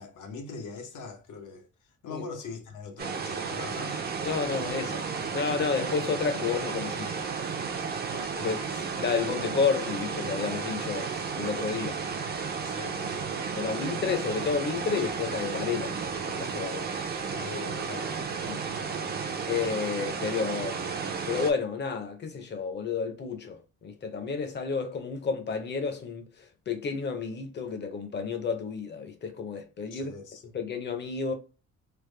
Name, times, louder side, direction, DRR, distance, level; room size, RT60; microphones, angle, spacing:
voice 1, 0.0-4.0 8.3-8.8 10.8-11.0 12.6-13.4 17.3-18.1 29.9-30.4, left 4 dB, 80° left, 0.9 m, -42 dB
sound 1, 3.0-21.5, right 5 dB, 35° right, 0.5 m, -33 dB
voice 2, 4.2-5.0 5.3-7.2 8.4-8.6 9.0-11.1 11.3-12.0 13.6-16.9 18.5-18.6 19.5-20.9 21.3-30.1 30.4-31.3, left 5 dB, 35° left, 0.6 m, -31 dB
3.4 x 2.1 x 3.1 m
wide cardioid pair, 165°, 30 cm